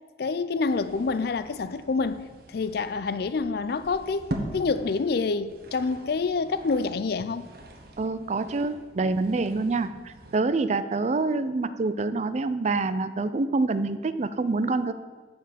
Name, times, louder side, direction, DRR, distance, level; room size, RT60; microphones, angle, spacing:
voice 1, 0.2-7.5, left 4 dB, 60° left, 0.4 m, -27 dB
sound 1, 0.6-10.4, right 1 dB, 55° right, 1.0 m, -42 dB
voice 2, 8.0-14.9, right 3 dB, 40° right, 0.4 m, -26 dB
9.2 x 4.4 x 7.2 m
head